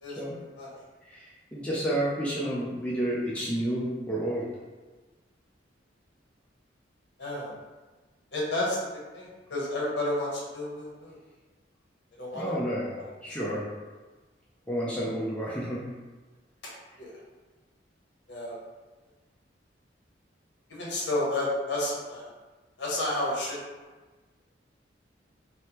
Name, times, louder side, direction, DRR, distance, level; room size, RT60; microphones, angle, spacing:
voice 1, 1.1-4.5 12.3-13.7 14.7-15.8, right 1 dB, 5° left, -7 dB, 0.4 m, -30 dB
voice 2, 7.2-7.5 8.3-8.8 9.1-11.2 12.2-12.5 12.9-13.0 13.4-13.5 17.0-17.1 18.3-18.5 20.7-22.3 22.8-23.6, left 1 dB, 65° left, -5 dB, 0.9 m, -31 dB
3.2 x 2.1 x 2.8 m, 1.3 s
head